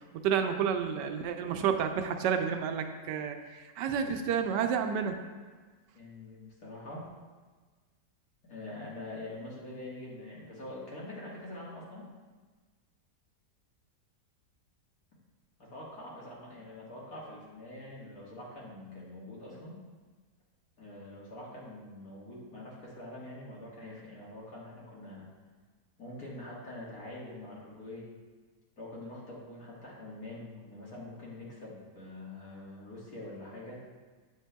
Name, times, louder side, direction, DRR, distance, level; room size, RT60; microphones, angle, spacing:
voice 1, 0.1-3.4 3.8-5.2, right 7 dB, 85° right, 6 dB, 1.2 m, -30 dB
voice 2, 5.9-7.1 8.4-12.1 15.6-19.8 20.8-25.3 26.0-28.1 28.8-33.8, left 1 dB, 60° left, -6 dB, 2.0 m, -45 dB
7.7 x 7.3 x 2.2 m, 1.4 s
omnidirectional pair, 1.8 m